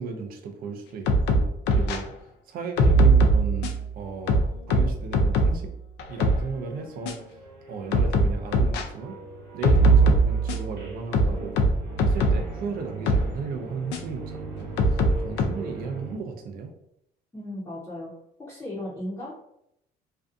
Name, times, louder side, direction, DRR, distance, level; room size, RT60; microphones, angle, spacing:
voice 1, 0.0-2.1 2.5-5.7 6.1-7.2 7.7-9.2 9.5-11.6 12.0-16.7, right 5 dB, 60° right, 4 dB, 0.4 m, -35 dB
sound 1, 1.1-2.0 2.8-3.8 4.3-5.6 6.0-6.4 7.1-7.2 7.9-8.8 9.6-10.7 11.1-12.5 13.1-13.3 13.9-14.0 14.8-15.4, right 2 dB, 85° left, 0.4 m, -20 dB
sound 2, 6.0-16.2, right 3 dB, 75° right, 0.9 m, -40 dB
voice 2, 17.3-18.1 18.4-19.3, left 1 dB, 15° left, -9 dB, 0.7 m, -35 dB
2.5 x 2.3 x 2.5 m, 0.78 s
cardioid pair, 110°, 17 cm